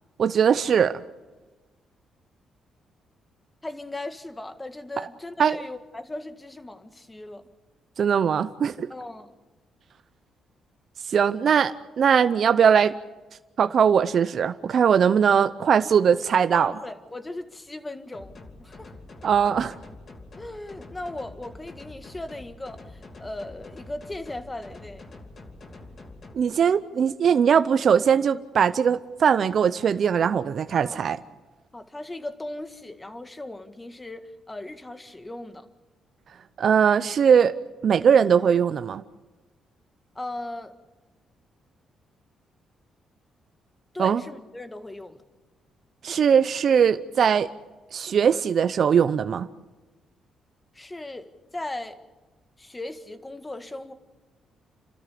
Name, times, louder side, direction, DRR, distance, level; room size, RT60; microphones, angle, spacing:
voice 1, 0.2-0.9 5.4-5.6 8.0-8.9 11.1-12.9 13.6-16.7 19.2-19.7 26.3-31.2 36.6-37.5 37.8-39.0 44.0-44.2 46.0-47.5 47.9-49.5, right 7 dB, 60° right, 11 dB, 0.7 m, -20 dB
voice 2, 3.6-7.5 8.9-9.3 15.7-16.0 16.5-18.9 20.4-25.0 30.8-31.0 31.7-35.7 40.2-40.8 43.9-45.2 50.7-52.0 52.6-53.9, left 2 dB, 20° left, 8 dB, 1.8 m, -38 dB
sound 1, 18.1-26.3, left 2 dB, 45° left, 2.9 m, -45 dB
30.0 x 13.0 x 8.5 m, 1.2 s
cardioid pair, 85°, 0 cm